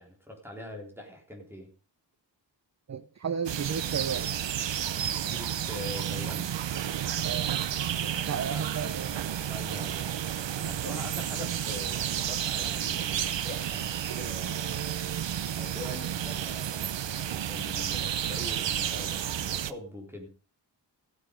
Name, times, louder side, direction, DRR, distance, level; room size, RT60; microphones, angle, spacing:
voice 1, 0.0-1.7 5.1-6.5 8.0-9.0 9.4-10.2 10.6-15.0 15.5-20.3, left 1 dB, 5° right, 0 dB, 3.8 m, -43 dB
voice 2, 2.9-4.3 7.2-7.6 8.3-9.1, right 7 dB, 35° right, 13 dB, 0.7 m, -33 dB
sound 1, 3.4-19.7, right 10 dB, 75° right, 0.8 m, -31 dB
15.5 x 9.2 x 5.3 m, 0.38 s
wide cardioid pair, 180°, 44 cm